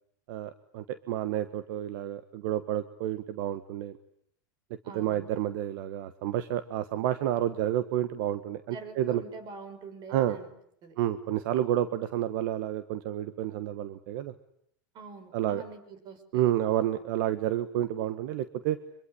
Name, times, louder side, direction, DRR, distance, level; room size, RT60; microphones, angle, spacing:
voice 1, 0.3-4.0 4.9-9.2 10.1-10.4 11.0-14.3 15.3-15.6 16.3-18.8, right 12 dB, 65° right, 12 dB, 1.4 m, -30 dB
voice 2, 4.8-5.3 8.7-10.5 10.8-11.0 14.9-16.5, right 4 dB, 40° right, 12 dB, 5.5 m, -45 dB
25.0 x 23.0 x 9.9 m, 0.70 s
supercardioid pair, 125°, 11 cm